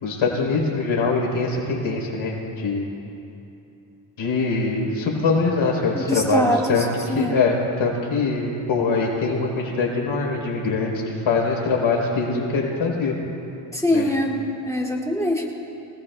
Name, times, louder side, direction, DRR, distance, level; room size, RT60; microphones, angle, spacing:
voice 1, 0.0-2.9 4.2-13.2 13.9-14.1, left 4 dB, 80° left, -2 dB, 3.7 m, -23 dB
voice 2, 6.1-6.8 7.1-7.4 13.7-15.5, left 1 dB, 5° left, -2 dB, 2.1 m, -23 dB
25.5 x 18.0 x 2.2 m, 2.8 s
cardioid pair, 120°, 47 cm